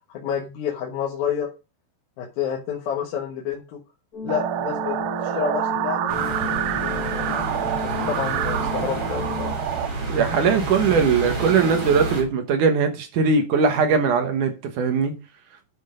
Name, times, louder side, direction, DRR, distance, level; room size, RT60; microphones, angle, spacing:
voice 1, 0.1-1.5 2.2-3.8 4.2-5.0 5.2-6.1 6.8-9.5, left 8 dB, 75° left, 3.1 m, -29 dB
sound 1, 4.1-9.5, left 2 dB, 25° left, 3.8 m, -33 dB
sound 2, 4.3-9.9, right 13 dB, 80° right, 2.7 m, -28 dB
sound 3, 6.1-12.2, right 2 dB, 40° right, 3.4 m, -30 dB
voice 2, 10.1-15.1, right 5 dB, 65° right, 2.5 m, -20 dB
10.5 x 6.2 x 5.1 m
omnidirectional pair, 4.4 m